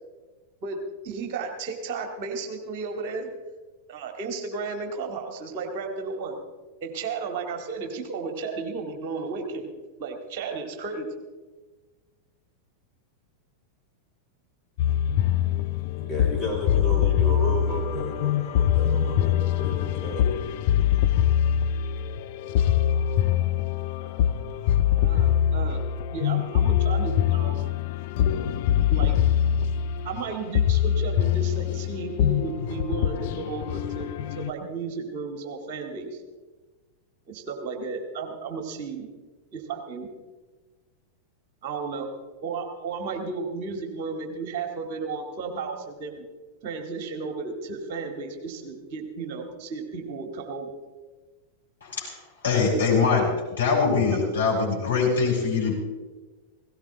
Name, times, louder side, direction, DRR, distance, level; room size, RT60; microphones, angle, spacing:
voice 1, 0.6-3.3 3.9-6.4 6.8-9.7 10.0-11.1 25.0-25.8 26.1-27.6 28.9-29.2 30.0-34.1 34.4-36.2 37.3-39.1 39.5-40.1 41.6-42.1 42.4-46.2 46.6-50.7 52.6-52.9 54.1-54.2, right 4 dB, 45° right, 4 dB, 2.1 m, -33 dB
sound 1, 14.8-34.5, left 10 dB, 50° left, 0.7 m, -24 dB
voice 2, 16.0-20.3, left 1 dB, 5° left, -4 dB, 5.7 m, -33 dB
voice 3, 51.8-52.2 52.4-53.3 53.6-55.7, left 5 dB, 70° left, -3 dB, 5.2 m, -23 dB
17.0 x 17.0 x 3.8 m, 1.3 s
figure-of-eight pair, 90°, 0 cm